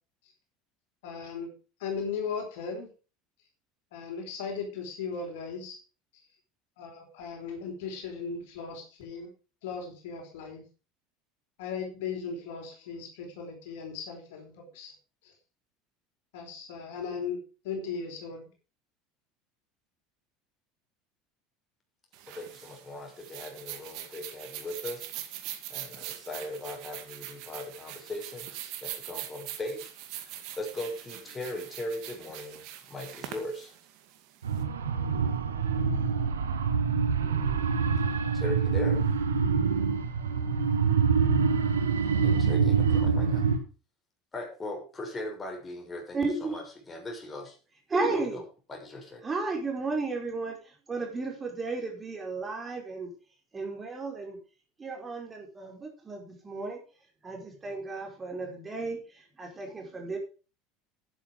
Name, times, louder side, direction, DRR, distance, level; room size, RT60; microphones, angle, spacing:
voice 1, 1.0-1.5 1.8-2.9 3.9-5.8 6.8-9.3 9.6-10.6 11.6-14.9 15.2-15.3 16.3-17.4 17.6-18.5, left 5 dB, 65° left, 2 dB, 4.6 m, -37 dB
sound 1, 22.1-34.6, right 12 dB, 60° right, 2.2 m, -42 dB
voice 2, 22.3-25.1 25.7-28.5 28.8-29.9 30.2-33.8 38.3-39.1 42.1-43.4 44.3-47.5 48.3-48.4 48.7-49.2, left 1 dB, 20° left, 1 dB, 6.7 m, -39 dB
sound 2, 34.4-43.6, right 5 dB, 80° right, 1.6 m, -25 dB
voice 3, 46.1-46.6 47.9-48.4 49.2-53.1 53.5-54.4 54.8-56.8 57.2-60.2, right 3 dB, 25° right, 2 dB, 5.0 m, -33 dB
11.0 x 10.0 x 5.2 m, 0.35 s
figure-of-eight pair, 70°, 0 cm